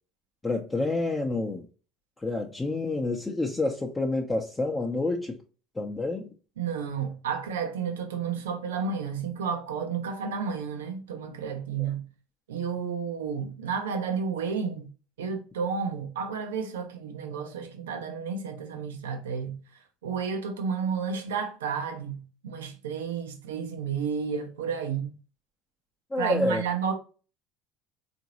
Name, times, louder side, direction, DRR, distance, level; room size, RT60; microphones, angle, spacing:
voice 1, 0.4-1.7 2.2-5.4 5.8-6.3 11.8-11.9 26.1-26.6, left 2 dB, 15° left, 0.6 m, -28 dB
voice 2, 6.6-12.0 12.5-14.9 15.2-19.6 20.0-25.1 26.2-26.9, right 6 dB, 85° right, 0.7 m, -31 dB
3.8 x 2.6 x 2.9 m
hypercardioid pair, 80°, 0 cm